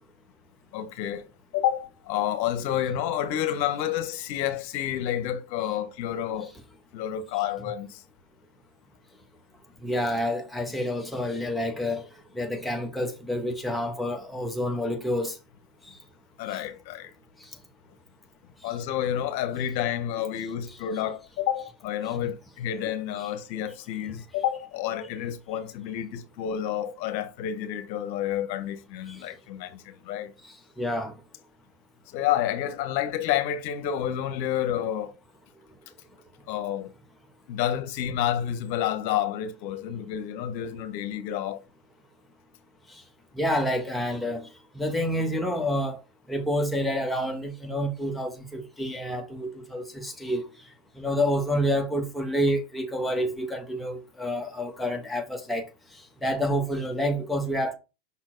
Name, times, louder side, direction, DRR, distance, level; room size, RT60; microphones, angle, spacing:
voice 1, 0.7-6.5 6.9-8.0 16.4-17.1 18.6-30.3 32.1-35.1 36.5-36.9 37.5-41.6, left 10 dB, 60° left, 1.0 m, -29 dB
voice 2, 9.8-12.1 12.3-15.4 16.5-16.6 22.2-22.3 29.1-29.2 30.4-31.2 43.3-44.5 44.7-46.0 46.3-50.4 51.0-55.6 56.2-57.8, equal, 5° left, 1.4 m, -28 dB
5.7 x 4.4 x 3.8 m
hypercardioid pair, 100°, 0 cm